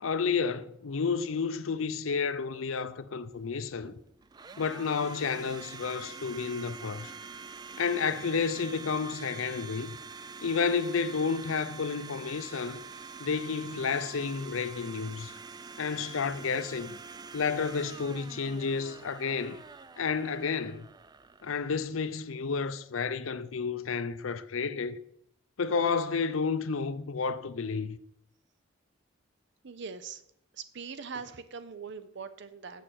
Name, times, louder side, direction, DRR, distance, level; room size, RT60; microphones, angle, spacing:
voice 1, 0.0-3.9 4.6-7.1 7.8-10.0 10.4-12.8 13.2-15.3 15.8-17.0 17.3-19.6 20.0-20.9 21.4-25.0 25.6-28.0, left 5 dB, 85° left, 0.6 m, -31 dB
Domestic sounds home sounds, 3.3-22.2, right 5 dB, 20° right, 0.3 m, -46 dB
voice 2, 29.6-30.2 30.5-32.8, right 5 dB, 60° right, 0.7 m, -41 dB
6.6 x 6.5 x 7.6 m
head